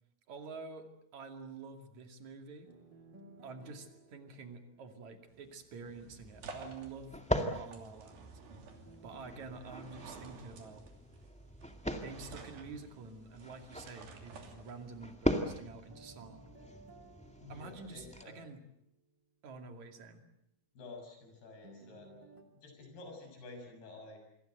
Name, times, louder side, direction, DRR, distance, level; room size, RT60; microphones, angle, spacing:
voice 1, 0.3-2.7 3.4-8.4 9.0-10.9 11.9-16.5 17.5-18.6 19.4-20.2, right 4 dB, 50° right, 5 dB, 3.6 m, -48 dB
sound 1, 2.7-5.7 8.5-11.7 15.9-19.0 21.6-22.4, right 3 dB, 35° right, 2.5 m, -59 dB
sound 2, 5.3-15.1, right 4 dB, 70° right, 4.7 m, -53 dB
sound 3, 5.8-18.2, equal, 5° left, 0.6 m, -41 dB
voice 2, 17.4-18.5 20.8-22.1 22.6-24.2, left 3 dB, 85° left, 3 dB, 9.0 m, -50 dB
28.0 x 22.0 x 8.0 m, 0.77 s
omnidirectional pair, 4.4 m